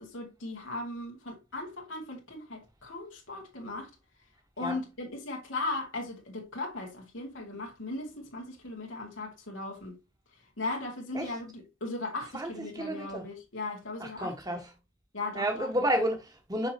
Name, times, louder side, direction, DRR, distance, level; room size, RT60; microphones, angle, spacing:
voice 1, 0.0-3.9 4.6-9.9 10.6-14.6 15.1-15.7, left 2 dB, 80° left, 2.2 m, -37 dB
voice 2, 12.7-13.2 14.0-14.6 15.3-16.7, right 1 dB, 20° right, 1.5 m, -30 dB
6.4 x 5.9 x 2.9 m
head